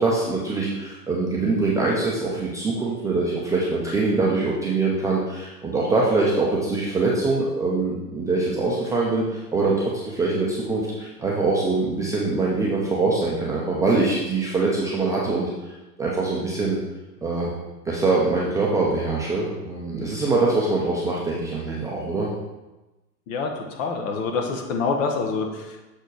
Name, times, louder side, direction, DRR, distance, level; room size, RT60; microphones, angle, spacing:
voice 1, 0.0-15.7 16.0-16.8 17.2-17.5 17.9-22.3, right 3 dB, 5° right, -5 dB, 0.5 m, -23 dB
voice 2, 23.3-25.9, left 4 dB, 50° left, 3 dB, 1.5 m, -26 dB
6.8 x 4.4 x 4.7 m, 1.1 s
hypercardioid pair, 115°, 50 cm